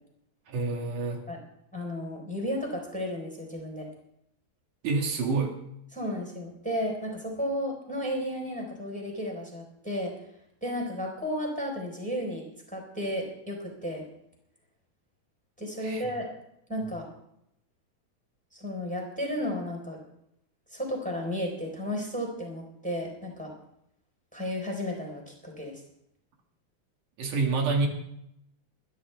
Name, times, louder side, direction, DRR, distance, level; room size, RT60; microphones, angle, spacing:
voice 1, 0.5-1.2 4.8-5.6 15.8-16.1 27.2-27.9, right 4 dB, 80° right, 2 dB, 3.4 m, -27 dB
voice 2, 1.7-3.9 5.9-10.1 10.6-14.0 15.6-16.3 16.7-17.1 18.5-20.0 20.7-23.5 24.3-25.8, equal, ahead, 0 dB, 4.0 m, -33 dB
20.5 x 13.0 x 3.5 m, 0.77 s
omnidirectional pair, 3.5 m